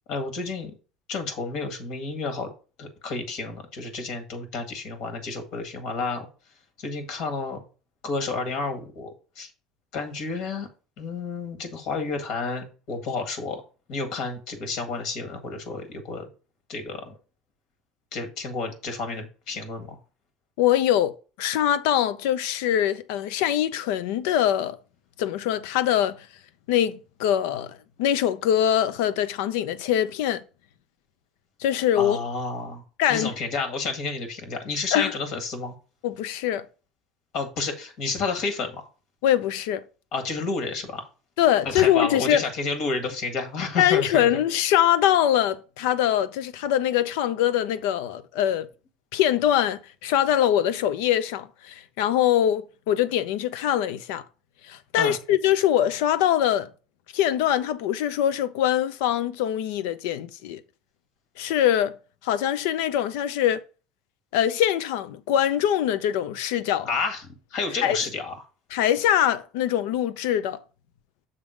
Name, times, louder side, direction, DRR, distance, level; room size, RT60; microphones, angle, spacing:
voice 1, 0.1-0.7 1.1-2.5 2.8-6.3 6.8-7.6 8.0-9.5 9.9-10.7 11.0-13.6 13.9-16.3 16.7-17.2 18.1-20.0 32.0-32.8 33.1-35.7 37.3-38.9 40.1-41.0 41.6-44.3 55.0-55.2 66.9-67.2 67.5-68.3, left 4 dB, 65° left, 1.9 m, -30 dB
voice 2, 20.6-24.8 25.2-26.3 26.7-30.4 31.6-32.2 33.0-33.3 34.9-35.2 36.0-36.7 39.2-39.8 41.4-42.4 43.8-48.7 49.1-54.2 54.6-56.7 57.1-60.6 61.4-62.0 62.2-63.6 64.3-66.9 67.8-68.0 68.7-70.6, left 11 dB, 90° left, 0.6 m, -23 dB
6.6 x 3.6 x 6.2 m
cardioid pair, 130°, 0 cm